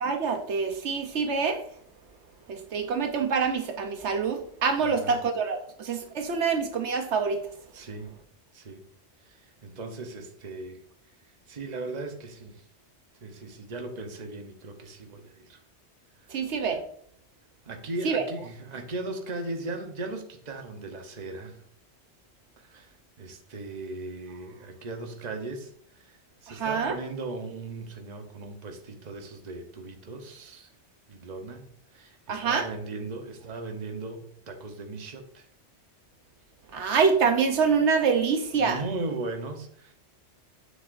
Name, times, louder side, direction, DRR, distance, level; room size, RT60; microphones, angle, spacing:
voice 1, 0.0-1.6 2.5-7.4 16.3-16.8 18.0-18.3 26.5-27.0 32.3-32.7 36.7-38.8, right 5 dB, 75° right, 5 dB, 1.1 m, -26 dB
voice 2, 4.8-5.2 7.7-8.2 8.5-8.8 9.3-10.8 11.5-12.6 13.2-15.6 17.7-21.6 22.6-30.7 31.1-31.7 31.9-35.5 38.6-39.9, right 2 dB, 40° right, 4 dB, 1.0 m, -38 dB
7.4 x 6.7 x 2.6 m, 0.63 s
omnidirectional pair, 1.2 m